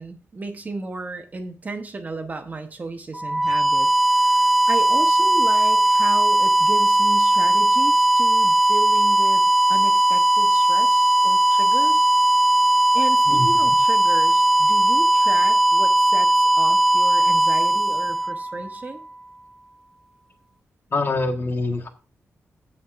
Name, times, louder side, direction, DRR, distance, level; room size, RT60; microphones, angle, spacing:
voice 1, 0.0-9.4 9.7-12.1 12.9-19.0, right 3 dB, 35° right, 6 dB, 1.1 m, -34 dB
sound 1, 3.1-18.9, right 1 dB, ahead, 0.3 m, -18 dB
voice 2, 13.3-13.8 20.9-21.9, left 2 dB, 45° left, 4 dB, 1.5 m, -25 dB
16.0 x 5.7 x 2.6 m, 0.36 s
wide cardioid pair, 135°, 5 cm